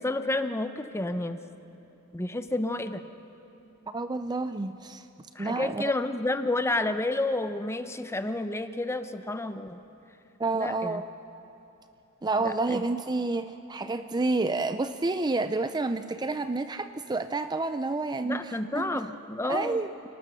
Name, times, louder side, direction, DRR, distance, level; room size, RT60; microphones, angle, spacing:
voice 1, 0.0-1.4 2.1-3.0 5.4-9.8 10.5-11.0 12.4-12.8 18.2-19.8, left 2 dB, 15° left, 9 dB, 0.8 m, -30 dB
voice 2, 3.9-5.1 5.4-5.9 10.4-11.1 12.2-19.1 19.4-19.9, right 3 dB, 20° right, 10 dB, 0.5 m, -29 dB
29.5 x 19.0 x 6.3 m, 2.9 s
head